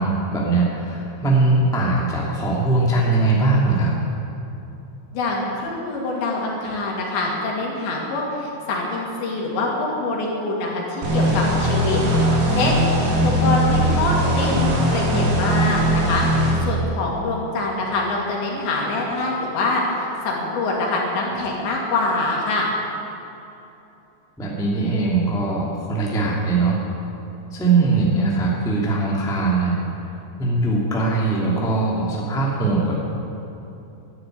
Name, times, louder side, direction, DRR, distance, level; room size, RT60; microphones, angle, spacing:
voice 1, 0.0-3.9 21.2-21.3 24.4-26.8 27.5-29.8 30.4-32.9, right 3 dB, ahead, -4 dB, 1.1 m, -21 dB
voice 2, 5.1-12.0 12.5-12.8 13.2-16.2 16.6-22.7, left 2 dB, 75° left, -2 dB, 4.6 m, -25 dB
sound 1, 11.0-16.5, equal, 60° right, 4.2 m, -20 dB
12.5 x 10.5 x 9.1 m, 2.8 s
omnidirectional pair, 5.2 m